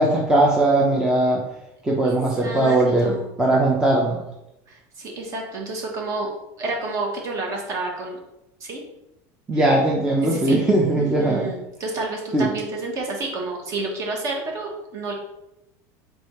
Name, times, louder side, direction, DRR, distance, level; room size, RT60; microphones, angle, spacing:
voice 1, 0.0-1.4 1.8-4.2 9.5-11.5 12.3-12.5, right 1 dB, 10° right, -2 dB, 0.5 m, -19 dB
voice 2, 2.0-3.3 4.7-6.3 6.6-8.2 8.6-8.8 9.5-9.7 10.2-10.6 10.9-15.1, right 3 dB, 35° right, 1 dB, 1.1 m, -30 dB
3.5 x 3.3 x 4.3 m, 0.88 s
cardioid pair, 155°, 9 cm